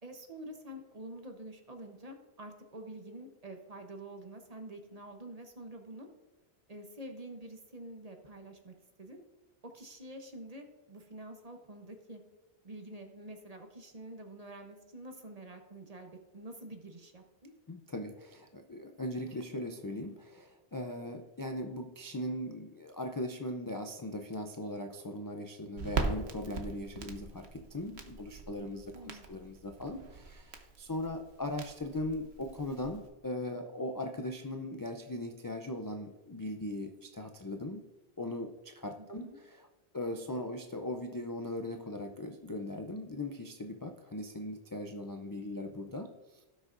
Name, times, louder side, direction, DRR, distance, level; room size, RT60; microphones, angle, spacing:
voice 1, 0.0-6.1 6.7-9.2 9.6-12.2 12.6-17.5 28.9-29.3 39.0-39.4, right 1 dB, 40° right, 4 dB, 1.0 m, -47 dB
voice 2, 17.7-37.8 38.2-39.7 39.9-46.5, left 1 dB, 30° left, 4 dB, 0.4 m, -39 dB
Crackle, 25.8-33.1, right 4 dB, 80° right, 1.2 m, -41 dB
16.5 x 6.3 x 2.6 m, 1.1 s
omnidirectional pair, 1.1 m